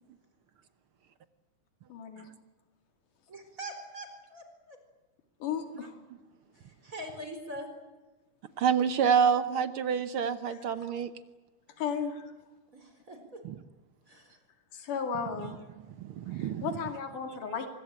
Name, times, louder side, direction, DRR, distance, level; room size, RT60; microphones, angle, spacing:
voice 1, 1.9-2.3 5.4-6.0 10.5-10.6 11.8-12.3 14.7-15.5 16.4-17.7, left 6 dB, 90° left, 6 dB, 3.9 m, -34 dB
voice 2, 3.3-4.8 6.5-7.7 10.7-10.8 12.7-13.4 14.1-14.4, right 1 dB, 25° right, 6 dB, 4.5 m, -43 dB
voice 3, 8.6-11.1 16.0-16.7, right 7 dB, 70° right, 12 dB, 1.3 m, -27 dB
24.5 x 21.5 x 8.9 m, 1.2 s
omnidirectional pair, 3.6 m